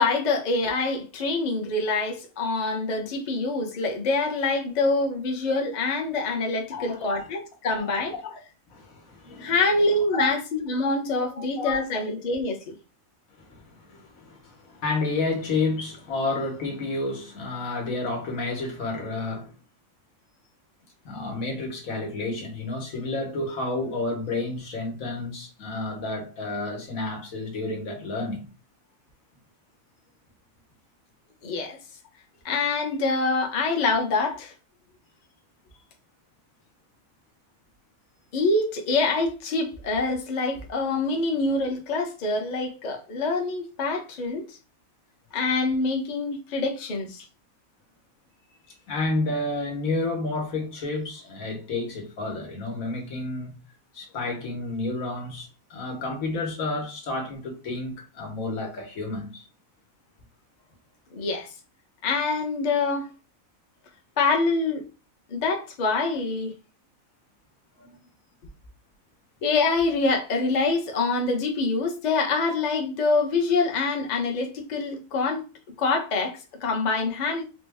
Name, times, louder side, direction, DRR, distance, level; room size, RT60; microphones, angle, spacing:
voice 1, 0.0-8.1 9.4-12.7 31.4-31.8 32.4-34.5 38.3-44.6 45.3-47.2 61.1-61.5 62.0-63.1 64.2-64.8 65.3-66.5 69.4-75.4 75.8-77.4, left 3 dB, 40° left, 0.7 m, -25 dB
voice 2, 6.7-7.1 7.8-7.9 8.2-8.3 8.7-9.5 10.1-10.2 11.3-12.0 13.4-19.5 21.0-28.4 48.9-53.6 53.9-59.4 67.8-68.0, left 2 dB, 80° left, 1.5 m, -30 dB
4.1 x 2.1 x 3.4 m
omnidirectional pair, 1.4 m